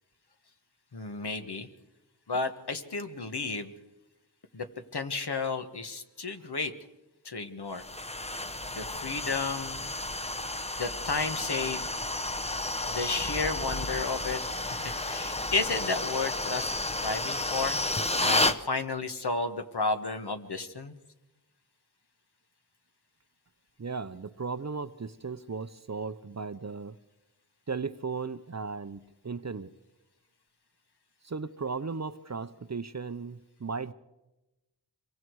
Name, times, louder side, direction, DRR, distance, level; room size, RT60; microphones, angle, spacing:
voice 1, 0.9-1.7 2.3-3.7 4.5-4.7 4.9-6.7 7.2-7.8 8.7-9.9 10.8-11.8 12.9-14.4 14.7-16.7 17.0-17.8 18.2-20.9, left 3 dB, 60° left, 8 dB, 1.6 m, -32 dB
sound 1, 7.7-18.6, left 2 dB, 15° left, 0.9 m, -32 dB
voice 2, 23.8-27.0 27.7-29.7 31.2-33.9, right 4 dB, 35° right, 13 dB, 0.7 m, -36 dB
26.0 x 23.0 x 4.8 m, 1.0 s
wide cardioid pair, 55°, 45 cm